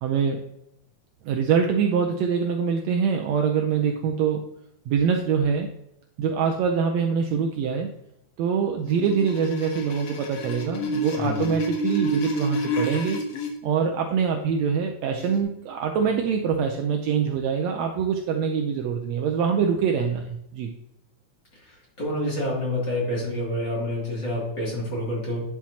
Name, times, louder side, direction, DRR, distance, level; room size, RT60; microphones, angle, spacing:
voice 1, 0.0-0.4 1.2-4.4 4.9-5.7 6.2-7.9 8.4-13.2 13.6-20.7, right 6 dB, 75° right, 2 dB, 1.7 m, -24 dB
sound 1, 8.9-13.5 15.2-15.4, equal, 65° left, 1.9 m, -29 dB
voice 2, 11.2-11.5 22.0-25.4, left 1 dB, 35° left, -5 dB, 3.1 m, -28 dB
10.5 x 5.9 x 2.8 m, 0.83 s
omnidirectional pair, 3.5 m